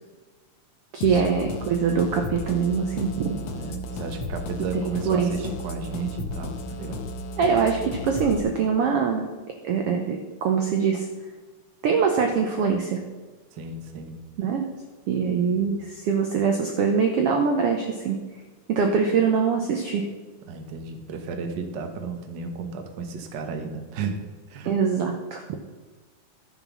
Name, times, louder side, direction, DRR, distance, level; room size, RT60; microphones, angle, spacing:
voice 1, 0.9-3.4 4.8-5.3 7.4-9.3 9.6-11.1 11.8-13.0 14.4-14.7 15.1-18.2 18.7-20.1 24.6-25.5, right 6 dB, 80° right, 4 dB, 1.3 m, -23 dB
sound 1, 1.0-8.4, left 2 dB, 65° left, 1.7 m, -34 dB
voice 2, 3.5-7.0 13.5-14.2 15.3-15.7 20.5-24.2 24.5-24.8, right 4 dB, 60° right, 5 dB, 1.1 m, -34 dB
13.0 x 6.0 x 6.1 m, 1.3 s
omnidirectional pair, 3.7 m